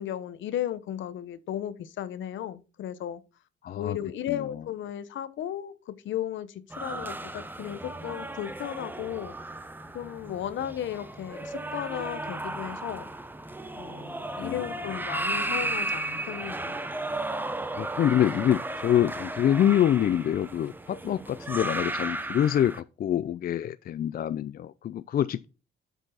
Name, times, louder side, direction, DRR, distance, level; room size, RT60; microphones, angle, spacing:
voice 1, 0.0-3.2 3.8-9.3 9.9-13.1 13.8-16.8, left 11 dB, 70° left, 0.9 m, -35 dB
voice 2, 3.6-4.0 4.3-4.4 14.4-14.6 17.8-25.5, left 10 dB, 50° left, 0.4 m, -26 dB
sound 1, 6.7-22.8, right 2 dB, 10° right, 0.7 m, -35 dB
8.0 x 4.5 x 5.6 m
cardioid pair, 90°, 20 cm